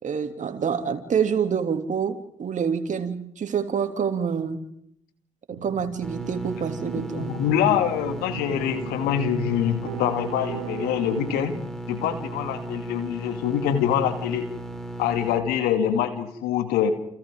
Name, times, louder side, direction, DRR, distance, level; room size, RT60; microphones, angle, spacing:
voice 1, 0.0-4.6 5.5-7.4, right 7 dB, 50° right, 7 dB, 3.0 m, -27 dB
sound 1, 5.5-11.5, right 9 dB, 85° right, 2.2 m, -38 dB
sound 2, 6.0-15.4, right 1 dB, 5° left, 4.6 m, -36 dB
voice 2, 7.2-11.5 11.9-14.5 15.0-16.9, left 9 dB, 75° left, 7 dB, 2.7 m, -25 dB
30.0 x 29.5 x 3.9 m, 0.73 s
hypercardioid pair, 40°, 16 cm